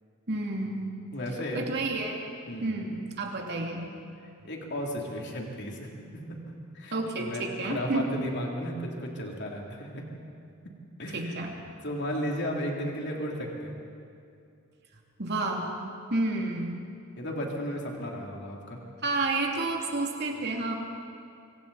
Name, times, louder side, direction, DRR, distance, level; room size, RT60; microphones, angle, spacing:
voice 1, 0.3-0.9 1.5-2.2 2.6-3.9 6.9-8.1 11.1-11.5 15.2-15.7 16.1-16.7 19.0-20.7, right 2 dB, 50° right, 0 dB, 2.8 m, -30 dB
voice 2, 1.1-1.7 2.5-2.7 4.2-6.4 6.7-10.0 11.0-11.4 11.8-13.8 17.2-18.8, equal, 50° left, -1 dB, 3.1 m, -34 dB
25.0 x 25.0 x 4.2 m, 2.5 s
head